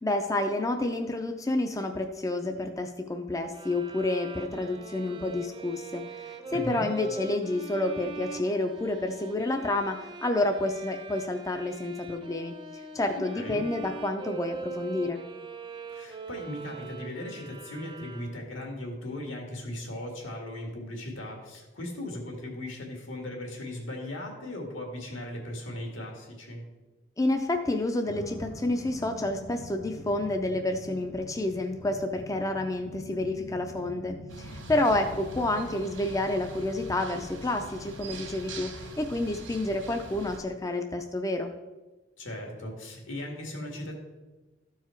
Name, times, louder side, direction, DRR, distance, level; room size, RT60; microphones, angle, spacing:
voice 1, 0.0-15.2 27.2-41.5, left 2 dB, 15° left, 5 dB, 0.4 m, -29 dB
sound 1, 3.5-18.6, right 4 dB, 25° right, 0.6 m, -42 dB
voice 2, 6.5-6.9 13.3-13.6 15.9-26.6 34.7-35.0 42.2-43.9, left 1 dB, 80° left, 1 dB, 2.1 m, -38 dB
sound 2, 28.1-39.8, left 1 dB, 60° left, 1.4 m, -46 dB
sound 3, 34.3-40.4, right 3 dB, 75° right, 1.4 m, -44 dB
13.5 x 4.7 x 4.4 m, 1.2 s
head